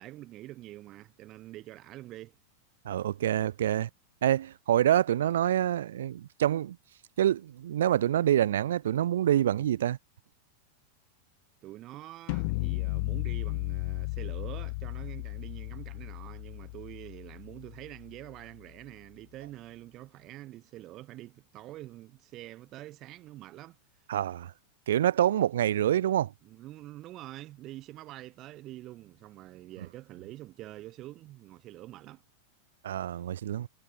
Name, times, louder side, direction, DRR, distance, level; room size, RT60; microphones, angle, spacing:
voice 1, 0.0-2.4 11.6-24.1 26.4-32.2, right 15 dB, 35° right, 0.9 m, -46 dB
voice 2, 2.9-3.9 4.2-6.8 7.2-10.0 24.1-24.5 24.9-26.3 32.8-33.7, right 11 dB, 60° right, 0.3 m, -26 dB
sound 1, 12.3-18.3, left 26 dB, 50° left, 0.4 m, -35 dB
figure-of-eight pair, 90°, 0 cm